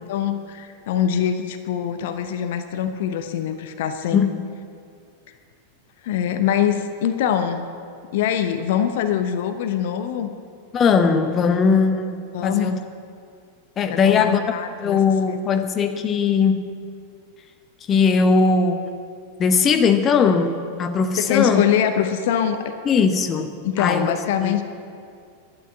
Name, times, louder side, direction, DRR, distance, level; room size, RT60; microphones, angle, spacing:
voice 1, 0.0-4.3 6.0-7.7 8.1-10.3 12.3-12.8 13.9-15.0 15.3-15.4 21.2-22.7 23.6-24.6, left 9 dB, 55° left, 8 dB, 0.8 m, -23 dB
voice 2, 10.7-12.8 13.8-14.5 14.8-16.8 17.9-18.8 19.4-21.6 22.8-24.6, left 5 dB, 25° left, 8 dB, 0.9 m, -19 dB
12.0 x 9.8 x 8.2 m, 2.3 s
figure-of-eight pair, 90°, 0 cm